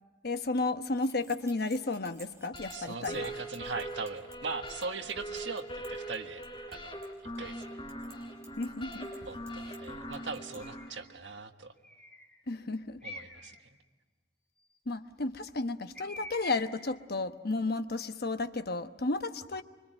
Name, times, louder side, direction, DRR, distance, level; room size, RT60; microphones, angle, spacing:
voice 1, 0.2-3.3 8.6-9.1 12.5-13.0 14.9-19.6, left 3 dB, 55° left, 9 dB, 1.1 m, -33 dB
sound 1, 0.8-10.6, right 2 dB, 15° right, 4.5 m, -57 dB
sound 2, 2.5-10.9, right 1 dB, 25° left, 4.5 m, -42 dB
voice 2, 2.7-6.4 6.7-7.7 9.3-11.7 13.0-13.5 19.5-19.6, right 4 dB, 75° right, 6 dB, 1.6 m, -40 dB
Bird, 10.6-11.1 11.8-12.4 13.0-13.6 15.9-16.9, left 1 dB, 5° left, 2.7 m, -45 dB
25.0 x 25.0 x 9.1 m, 1.3 s
head